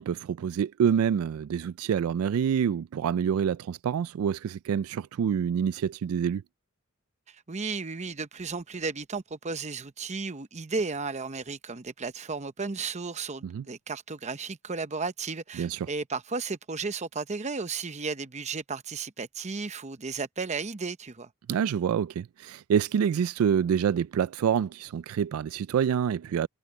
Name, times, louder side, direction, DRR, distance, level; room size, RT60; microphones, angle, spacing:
voice 1, 0.0-6.4 13.4-13.6 15.6-15.9 21.5-26.5, right 8 dB, 80° right, 0.3 m, -27 dB
voice 2, 7.5-21.3 23.1-23.2, right 4 dB, 35° right, 0.8 m, -34 dB
head